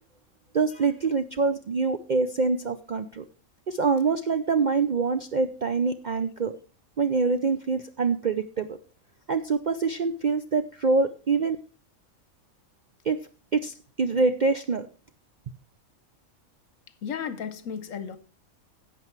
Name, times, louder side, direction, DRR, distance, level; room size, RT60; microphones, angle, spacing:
voice 1, 0.5-3.2 3.7-6.6 7.0-8.8 9.3-11.6 13.0-13.2 13.5-14.9, right 4 dB, 55° right, 0.5 m, -25 dB
voice 2, 17.0-18.2, left 7 dB, 70° left, 1.2 m, -34 dB
11.5 x 8.0 x 4.6 m
omnidirectional pair, 1.4 m